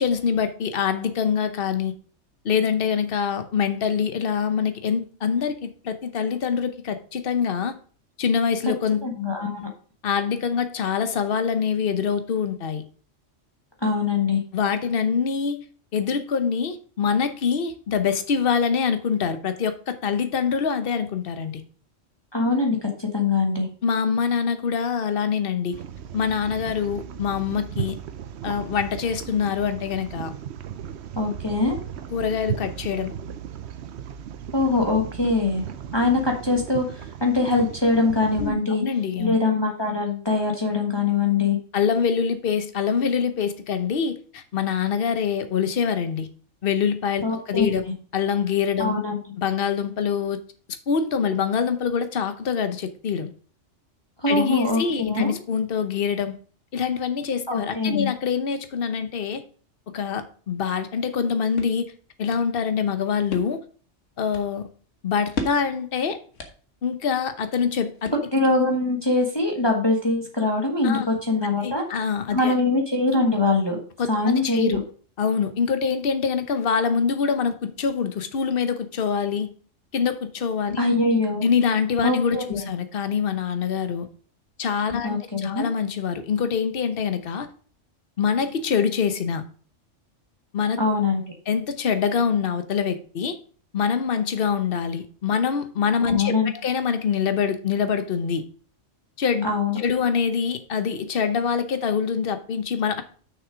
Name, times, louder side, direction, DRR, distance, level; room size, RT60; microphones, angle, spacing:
voice 1, 0.0-1.9 2.4-7.7 8.2-9.1 10.0-12.8 14.5-15.7 15.9-21.6 23.8-25.8 26.1-28.0 28.4-30.3 32.1-33.1 38.4-39.3 41.7-46.3 46.6-47.8 48.1-48.9 49.4-50.4 50.9-53.3 54.3-56.4 56.7-59.4 59.9-61.9 62.2-63.6 64.2-64.7 65.0-66.2 66.8-68.1 70.8-71.1 71.6-72.5 74.0-74.8 75.2-79.5 79.9-80.8 81.4-84.1 84.6-87.5 88.2-89.4 90.5-90.8 91.5-93.4 93.7-98.4 99.2-99.5 99.8-103.0, left 6 dB, 50° left, 1.0 m, -25 dB
voice 2, 9.0-9.7 13.8-14.4 22.3-23.7 31.1-31.8 34.5-35.6 35.9-38.8 39.2-41.6 47.2-47.7 48.8-49.2 54.2-55.3 57.5-58.1 68.3-71.8 72.3-73.8 74.1-74.8 80.8-81.4 82.0-82.6 85.0-85.7 90.8-91.2 96.0-96.5 99.4-99.8, left 3 dB, 20° left, 1.4 m, -23 dB
sound 1, 25.7-38.5, right 8 dB, 65° right, 0.9 m, -36 dB
sound 2, 61.2-68.7, left 2 dB, 75° left, 1.6 m, -39 dB
6.4 x 6.3 x 5.0 m
omnidirectional pair, 1.3 m